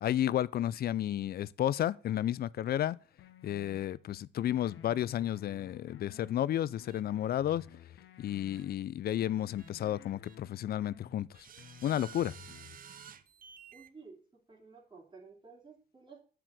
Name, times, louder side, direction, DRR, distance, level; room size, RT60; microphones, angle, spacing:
voice 1, 0.0-3.0 3.4-7.6 8.2-11.3 11.8-12.3, left 11 dB, 50° left, 0.4 m, -32 dB
sound 1, 3.2-4.0 4.4-6.4 6.8-8.8 9.2-11.2 11.6-12.8, left 9 dB, 70° left, 0.8 m, -54 dB
sound 2, 6.9-7.0 7.5-7.6 8.5-8.6 9.6-9.7 10.2-10.4 11.3-13.9, right 8 dB, 45° right, 0.7 m, -52 dB
voice 2, 13.7-16.2, right 4 dB, 25° right, 3.0 m, -54 dB
7.6 x 4.9 x 6.1 m
cardioid pair, 90°, 20 cm